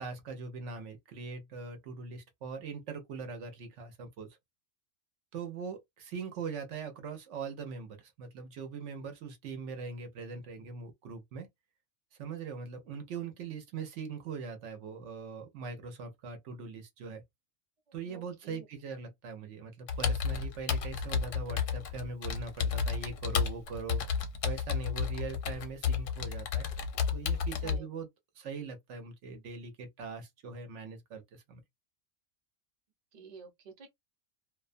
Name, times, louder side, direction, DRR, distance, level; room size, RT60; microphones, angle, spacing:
voice 1, 0.0-4.3 5.3-11.5 12.2-17.2 17.9-24.0 24.4-26.7 27.1-28.1 28.4-31.6, right 5 dB, 75° right, 1.0 m, -41 dB
voice 2, 17.9-18.6 27.6-27.9 33.1-33.9, right 5 dB, 40° right, 0.7 m, -50 dB
Computer keyboard, 19.9-27.8, left 6 dB, 80° left, 0.9 m, -32 dB
2.3 x 2.2 x 2.5 m
omnidirectional pair, 1.3 m